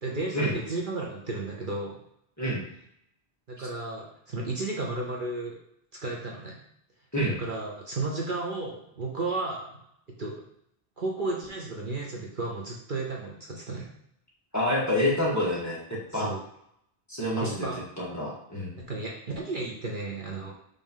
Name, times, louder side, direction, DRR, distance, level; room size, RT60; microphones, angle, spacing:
voice 1, 0.0-1.9 3.5-5.6 6.0-6.6 7.4-9.7 10.2-10.4 11.0-13.9 16.1-16.4 17.4-17.8 18.8-20.5, right 3 dB, 50° right, -2 dB, 1.1 m, -33 dB
voice 2, 14.5-16.3 17.1-17.6 18.0-18.7, left 1 dB, 15° left, -6 dB, 1.7 m, -27 dB
5.4 x 3.3 x 5.5 m, 0.73 s
omnidirectional pair, 1.1 m